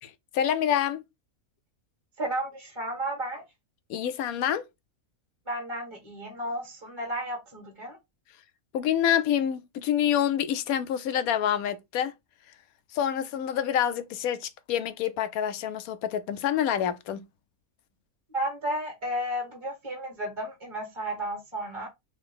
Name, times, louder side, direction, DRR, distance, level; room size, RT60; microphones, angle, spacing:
voice 1, 0.0-1.0 3.9-4.6 8.7-12.1 12.9-17.2, left 10 dB, 80° left, 1.0 m, -27 dB
voice 2, 2.2-3.4 5.5-8.0 18.3-21.9, right 1 dB, 20° right, 1.5 m, -33 dB
3.8 x 3.3 x 3.7 m
omnidirectional pair, 1.5 m